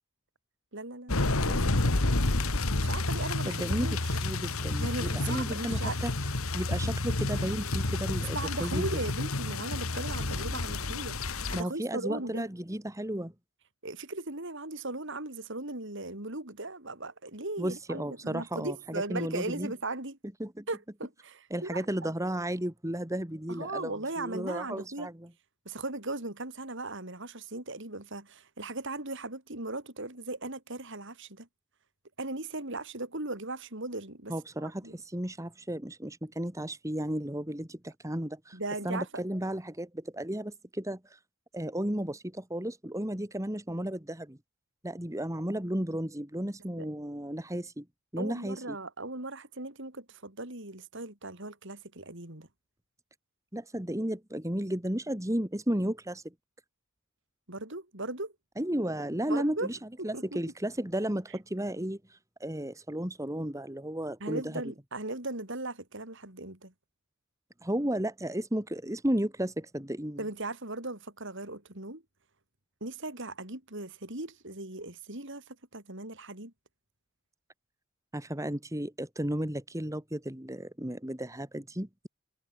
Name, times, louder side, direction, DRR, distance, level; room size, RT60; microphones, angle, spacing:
voice 1, 0.7-1.6 2.0-2.1 2.7-4.2 4.8-6.0 8.3-12.5 13.8-20.2 20.7-22.1 23.5-25.1 25.6-31.5 32.2-34.3 34.6-34.9 38.5-39.1 46.8-46.9 48.2-52.5 57.5-58.3 59.3-59.7 60.0-60.4 64.2-66.7 70.2-72.0 72.8-76.5, right 2 dB, 55° right, 4.6 m, -38 dB
sound 1, 1.1-11.6, left 2 dB, 70° left, 2.0 m, -30 dB
voice 2, 3.5-6.1 6.5-8.9 11.5-13.3 17.6-19.7 20.4-20.7 21.5-25.3 34.3-38.6 38.8-41.2 41.5-44.4 44.8-47.9 48.1-48.8 53.5-56.3 58.6-59.8 60.0-64.6 67.6-70.2 78.1-82.1, right 1 dB, 15° right, 2.0 m, -34 dB
head